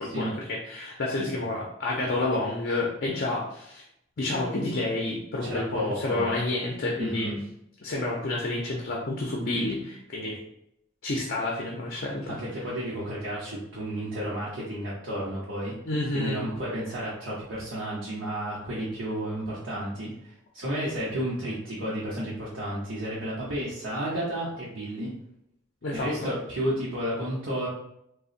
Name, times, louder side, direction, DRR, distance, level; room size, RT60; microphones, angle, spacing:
voice 1, 0.0-3.8 4.2-7.3 7.8-10.4 11.0-12.4 15.9-16.4 25.8-26.3, left 2 dB, 50° left, -2 dB, 0.5 m, -29 dB
voice 2, 5.4-6.4 7.0-7.4 12.3-15.7 16.1-25.1 25.9-27.7, equal, 85° right, -8 dB, 0.8 m, -32 dB
3.8 x 2.1 x 2.4 m, 0.77 s
head